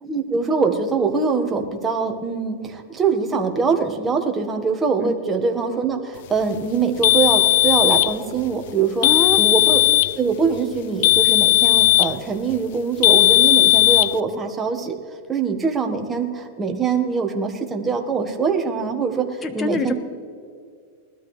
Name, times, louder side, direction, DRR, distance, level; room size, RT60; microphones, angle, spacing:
voice 1, 0.0-9.1 9.4-9.8 10.2-15.0 15.3-19.9, right 5 dB, 15° right, 3 dB, 1.4 m, -23 dB
sound 1, 7.0-8.2 9.0-10.2 11.0-12.2 13.0-14.2, left 21 dB, 65° left, 0.3 m, -16 dB
voice 2, 9.0-9.4 19.4-19.9, left 4 dB, 20° left, 9 dB, 1.2 m, -25 dB
20.0 x 13.0 x 3.3 m, 2.2 s
supercardioid pair, 135°, 0 cm